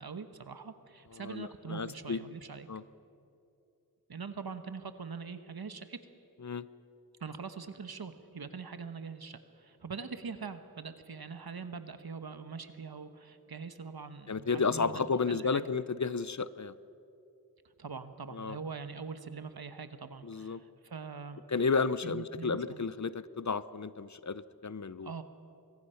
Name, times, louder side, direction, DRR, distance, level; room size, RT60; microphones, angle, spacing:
voice 1, 0.0-2.7 4.1-6.0 7.2-15.7 17.8-21.4 22.0-22.8 25.0-25.2, right 5 dB, 85° right, 9 dB, 1.2 m, -43 dB
voice 2, 1.2-2.2 2.7-2.8 6.4-6.6 14.3-16.7 18.3-18.6 20.2-20.6 21.5-25.1, left 5 dB, 50° left, 16 dB, 0.7 m, -32 dB
25.0 x 22.0 x 5.7 m, 2.7 s
wide cardioid pair, 40°, 36 cm